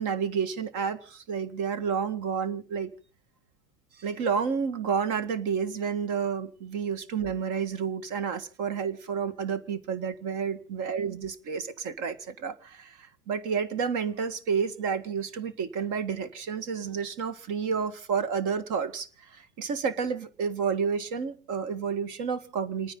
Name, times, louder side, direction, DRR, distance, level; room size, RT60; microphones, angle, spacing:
voice 1, 0.0-2.9 4.0-22.9, right 6 dB, 40° right, 2.0 m, -30 dB
29.5 x 9.8 x 4.0 m
hypercardioid pair, 95°, 44 cm